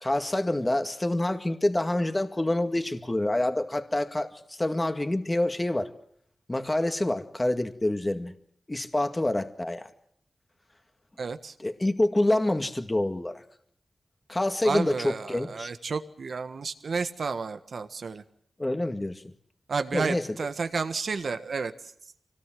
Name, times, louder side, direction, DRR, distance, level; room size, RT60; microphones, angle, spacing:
voice 1, 0.0-5.9 6.5-8.3 8.7-9.9 11.6-13.4 14.3-15.7 18.6-19.2 19.9-20.4, left 1 dB, 25° left, 7 dB, 2.0 m, -27 dB
voice 2, 11.2-11.5 14.6-18.2 19.7-21.7, right 4 dB, 75° right, 9 dB, 1.5 m, -31 dB
25.0 x 18.5 x 7.7 m, 0.70 s
cardioid pair, 45°, 0 cm